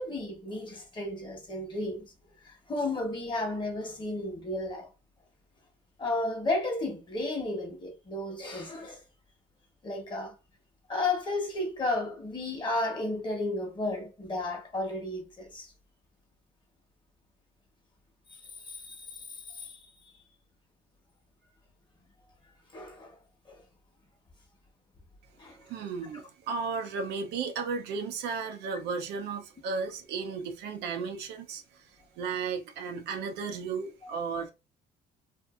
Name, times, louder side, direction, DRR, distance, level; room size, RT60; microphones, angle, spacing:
voice 1, 0.0-2.1 2.4-4.9 6.0-9.0 9.8-10.3 10.9-15.7 18.6-19.8 20.0-20.2 22.7-23.2 23.5-23.6 25.4-25.6 34.0-34.1, left 2 dB, 30° left, 1.1 m, -33 dB
voice 2, 25.7-31.8 32.2-34.5, right 5 dB, 80° right, 0.6 m, -34 dB
2.6 x 2.5 x 2.4 m
cardioid pair, 110°, 17 cm